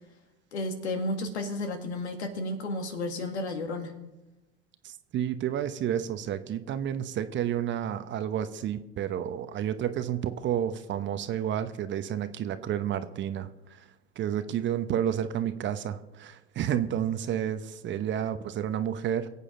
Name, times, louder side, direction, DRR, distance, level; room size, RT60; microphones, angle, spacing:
voice 1, 0.5-3.9, left 2 dB, 80° left, 5 dB, 2.1 m, -32 dB
voice 2, 4.8-13.8 14.2-19.3, right 10 dB, 35° right, 11 dB, 1.0 m, -30 dB
22.5 x 8.4 x 3.9 m, 1.0 s
hypercardioid pair, 85°, 33 cm